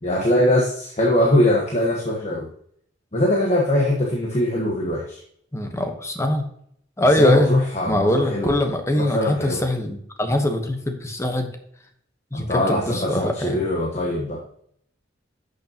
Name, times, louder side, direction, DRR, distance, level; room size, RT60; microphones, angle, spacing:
voice 1, 0.0-2.5 3.1-5.2 7.2-8.5 8.9-9.6 12.3-14.4, left 1 dB, 35° left, -2 dB, 1.2 m, -21 dB
voice 2, 5.5-6.4 7.0-11.5 12.3-13.6, left 1 dB, 15° left, 5 dB, 1.0 m, -22 dB
11.5 x 6.6 x 2.9 m, 0.67 s
head